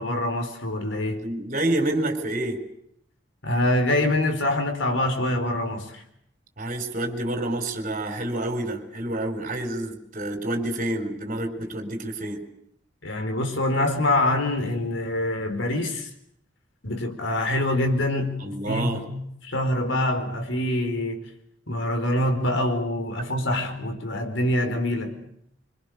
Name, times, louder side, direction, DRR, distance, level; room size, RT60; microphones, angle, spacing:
voice 1, 0.0-1.3 3.4-6.0 13.0-16.1 16.8-21.3 21.7-25.3, left 1 dB, 80° left, 4.5 m, -25 dB
voice 2, 1.2-2.6 6.6-12.4 18.4-19.0, right 1 dB, 45° right, 4.5 m, -28 dB
26.0 x 25.5 x 6.8 m
head